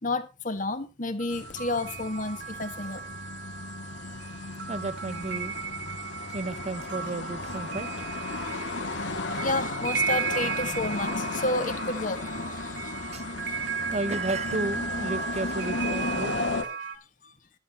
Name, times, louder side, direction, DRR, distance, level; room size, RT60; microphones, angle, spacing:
voice 1, 0.0-3.0 8.4-13.7 17.2-17.3, left 2 dB, 45° left, 1.6 m, -32 dB
sound 1, 1.2-17.0, right 6 dB, 75° right, 1.9 m, -35 dB
sound 2, 1.3-16.6, left 3 dB, 75° left, 1.9 m, -35 dB
voice 2, 4.7-5.5 6.3-8.1 13.1-13.2 13.5-16.4, right 2 dB, 35° right, 0.6 m, -33 dB
12.0 x 10.5 x 4.2 m
head